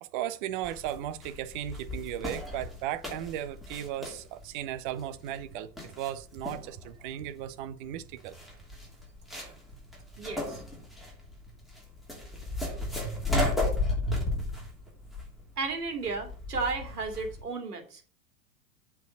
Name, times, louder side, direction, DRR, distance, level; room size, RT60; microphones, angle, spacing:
voice 1, 0.0-8.3, right 11 dB, 30° right, 0.7 m, -36 dB
sound 1, 0.6-17.4, left 2 dB, ahead, 2.9 m, -34 dB
voice 2, 10.2-10.6 15.6-18.0, right 4 dB, 70° right, 2.6 m, -34 dB
8.0 x 4.7 x 6.3 m
figure-of-eight pair, 100°, 48 cm